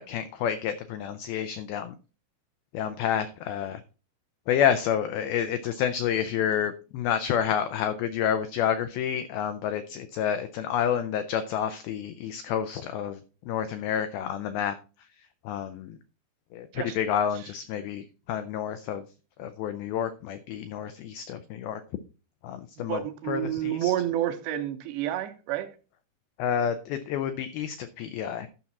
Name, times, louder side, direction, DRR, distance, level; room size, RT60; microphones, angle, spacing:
voice 1, 0.0-1.9 2.7-3.8 4.5-13.2 13.5-14.8 15.5-16.0 16.5-19.0 19.4-21.8 22.4-23.9 26.4-28.5, left 9 dB, 90° left, 10 dB, 2.1 m, -29 dB
voice 2, 22.9-25.7, right 12 dB, 80° right, 7 dB, 2.9 m, -29 dB
12.0 x 5.9 x 4.1 m, 0.35 s
omnidirectional pair, 5.1 m